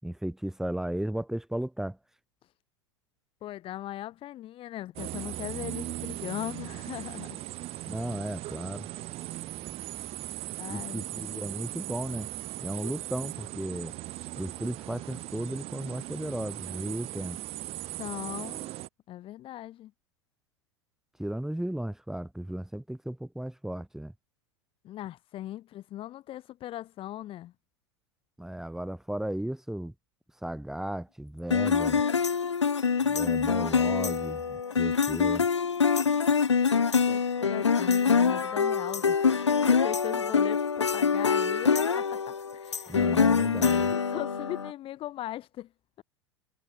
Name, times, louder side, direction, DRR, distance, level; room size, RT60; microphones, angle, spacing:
voice 1, 0.0-2.0 7.9-8.9 10.7-12.3 12.6-13.9 14.4-17.4 21.2-24.1 28.4-29.9 30.4-32.0 33.0-35.4 42.9-43.9, right 1 dB, 5° right, 6.3 m, -35 dB
voice 2, 3.4-7.4 10.6-11.4 18.0-18.7 19.1-19.9 24.8-27.5 36.7-43.0 43.9-45.7, left 13 dB, 40° left, 5.9 m, -39 dB
sound 1, 5.0-18.9, right 17 dB, 45° right, 5.1 m, -38 dB
sound 2, 31.5-44.7, left 6 dB, 85° left, 0.9 m, -25 dB
figure-of-eight pair, 90°, 14 cm